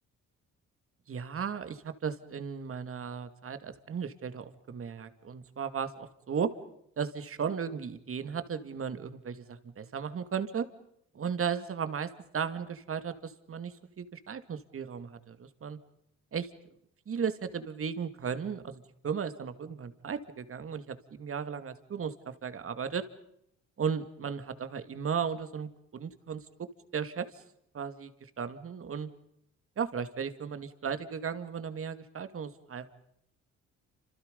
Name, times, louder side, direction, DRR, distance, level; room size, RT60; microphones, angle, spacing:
voice 1, 1.1-6.5 7.0-10.7 11.1-15.8 16.3-16.5 17.1-23.1 23.8-26.7 26.9-27.4 27.7-29.1 29.8-32.9, right 7 dB, 45° right, 10 dB, 2.2 m, -35 dB
29.5 x 27.0 x 5.3 m, 0.73 s
cardioid pair, 90°, 30 cm